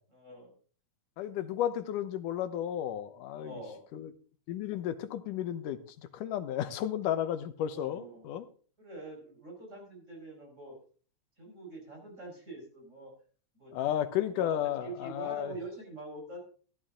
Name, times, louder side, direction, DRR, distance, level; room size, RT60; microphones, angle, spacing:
voice 1, 0.1-0.5 3.4-3.9 7.6-8.3 8.8-10.8 11.4-13.1 13.5-13.7 14.3-16.5, right 2 dB, 20° right, 0 dB, 5.3 m, -45 dB
voice 2, 1.2-3.6 3.9-4.1 4.5-8.5 13.7-15.5, left 11 dB, 85° left, 10 dB, 2.5 m, -33 dB
15.0 x 11.5 x 3.8 m, 0.42 s
omnidirectional pair, 3.7 m